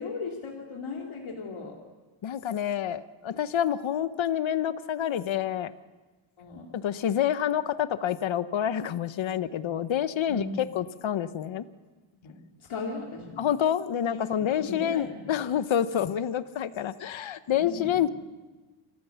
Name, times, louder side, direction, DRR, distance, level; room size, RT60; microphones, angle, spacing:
voice 1, 0.0-1.8 6.4-6.7 10.3-10.6 12.2-13.5 14.1-15.4 16.0-16.1 17.5-18.1, left 4 dB, 90° left, -1 dB, 2.6 m, -37 dB
voice 2, 2.2-5.7 6.8-11.6 13.4-18.1, left 10 dB, 70° left, 13 dB, 1.0 m, -28 dB
27.0 x 15.0 x 7.0 m, 1.3 s
cardioid pair, 90°, 48 cm